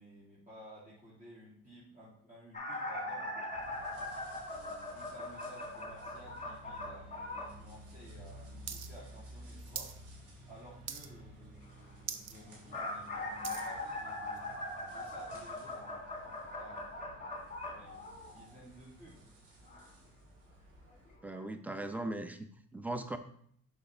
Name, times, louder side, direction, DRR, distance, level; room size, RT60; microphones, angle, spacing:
voice 1, 0.0-3.9 4.5-9.9 10.5-14.5 14.9-19.3, equal, 25° right, -9 dB, 2.8 m, -55 dB
sound 1, 2.5-7.6 12.4-18.6 19.7-19.8 20.9-21.0 21.3-21.4, left 2 dB, 25° left, 1.8 m, -41 dB
sound 2, 3.5-21.1, equal, 85° right, 2.5 m, -54 dB
sound 3, 8.7-8.9 9.1-10.0 10.3-10.6 10.9-11.3 11.7-11.8 12.0-12.3 12.8-13.7 14.4-14.5, right 8 dB, 60° right, 0.7 m, -42 dB
voice 2, 21.2-23.2, right 2 dB, 5° right, 8 dB, 0.6 m, -39 dB
6.3 x 5.1 x 3.4 m, 0.63 s
cardioid pair, 90°, 30 cm